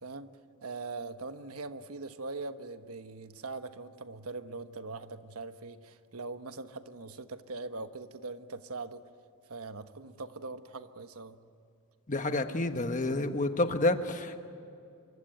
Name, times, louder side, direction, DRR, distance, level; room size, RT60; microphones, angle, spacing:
voice 1, 0.0-0.3 0.6-9.0 9.5-11.4, right 3 dB, 80° right, 9 dB, 1.2 m, -41 dB
voice 2, 12.1-14.4, left 2 dB, 35° left, 7 dB, 1.4 m, -29 dB
27.0 x 24.0 x 9.3 m, 2.5 s
head